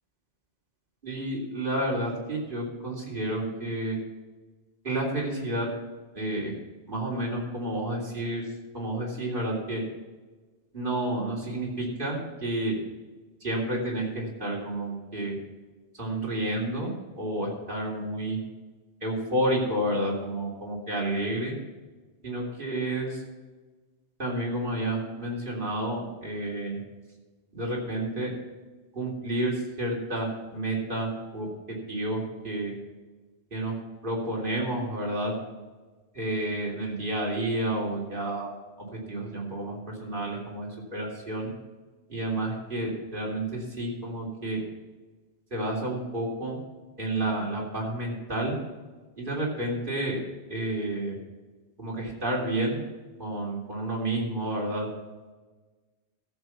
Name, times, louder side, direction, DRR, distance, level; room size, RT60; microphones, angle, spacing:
voice 1, 1.0-4.0 4.8-5.7 6.1-6.5 6.9-8.5 8.7-9.8 10.7-12.8 13.4-15.4 16.0-16.9 17.2-18.4 19.0-21.6 22.2-23.2 24.2-26.8 27.5-28.3 28.9-31.5 31.9-32.7 33.5-33.8 34.0-35.3 36.1-38.5 39.1-41.5 42.1-44.6 45.5-46.6 47.0-48.6 49.2-50.2 50.5-51.2 51.8-52.8 53.2-54.9, right 1 dB, 45° right, -3 dB, 3.5 m, -30 dB
14.0 x 7.5 x 5.8 m, 1.3 s
omnidirectional pair, 1.2 m